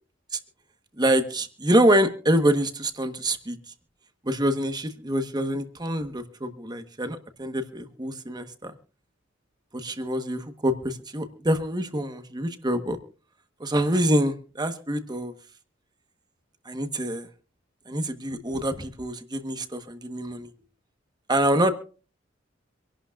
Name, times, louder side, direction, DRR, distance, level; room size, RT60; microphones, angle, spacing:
voice 1, 1.0-3.6 4.2-8.7 9.7-13.0 13.6-15.3 16.7-17.3 17.9-20.5 21.3-21.7, right 1 dB, 20° right, 8 dB, 1.2 m, -25 dB
26.0 x 11.5 x 2.4 m, 0.37 s
head